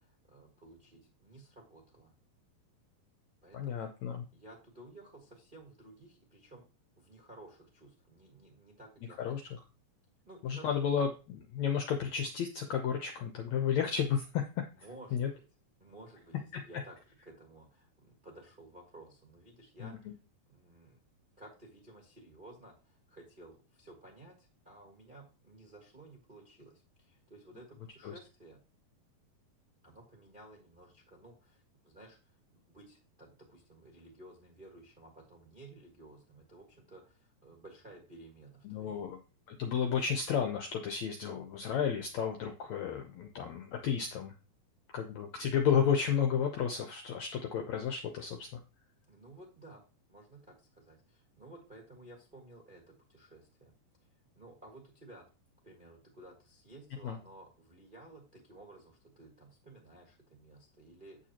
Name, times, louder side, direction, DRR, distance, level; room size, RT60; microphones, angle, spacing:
voice 1, 0.0-2.1 3.4-3.9 4.3-6.6 7.0-9.5 10.3-10.8 14.8-15.4 15.8-16.3 16.6-16.9 17.2-20.1 20.5-21.0 21.4-28.6 29.8-32.4 32.7-39.0 49.1-49.8 50.1-53.7 54.3-55.2 55.6-61.2, right 2 dB, 30° right, 0 dB, 0.9 m, -55 dB
voice 2, 3.5-4.2 9.2-9.4 10.4-14.4 15.1-15.3 19.8-20.1 28.0-28.1 38.6-39.2 39.5-44.3 44.9-48.6 57.0-57.2, left 7 dB, 75° left, 4 dB, 1.7 m, -32 dB
8.5 x 8.0 x 2.9 m, 0.33 s
omnidirectional pair, 4.2 m